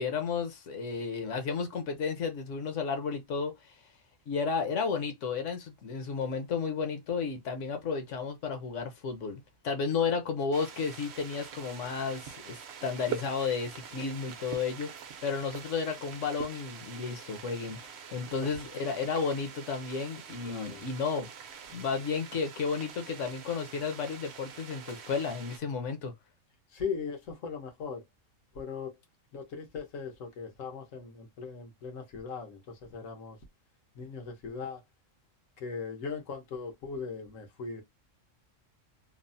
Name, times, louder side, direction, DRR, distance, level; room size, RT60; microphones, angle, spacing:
voice 1, 0.0-3.5 4.3-14.9 15.2-17.8 18.1-21.3 21.7-26.1, left 5 dB, 70° left, 1.1 m, -32 dB
sound 1, 10.5-25.6, right 8 dB, 65° right, 0.8 m, -45 dB
voice 2, 20.4-20.8 26.7-28.0 28.5-28.9 29.3-33.4 33.9-34.8 35.6-37.8, left 5 dB, 90° left, 1.3 m, -39 dB
3.2 x 2.0 x 2.5 m
omnidirectional pair, 1.3 m